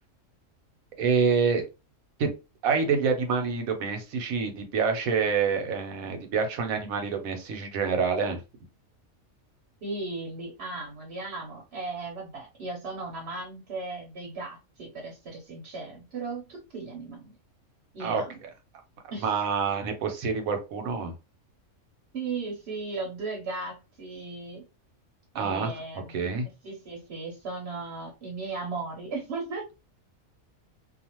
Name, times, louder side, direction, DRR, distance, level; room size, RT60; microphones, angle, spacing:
voice 1, 1.0-1.6 2.2-2.3 2.6-8.4 18.0-18.5 19.2-21.1 25.3-25.7 26.1-26.5, right 5 dB, 90° right, 5 dB, 1.2 m, -27 dB
voice 2, 9.8-17.4 17.9-18.4 19.1-19.3 22.1-24.6 25.3-26.3 26.6-29.7, right 3 dB, 55° right, 0 dB, 1.0 m, -36 dB
2.5 x 2.4 x 2.9 m, 0.27 s
omnidirectional pair, 1.4 m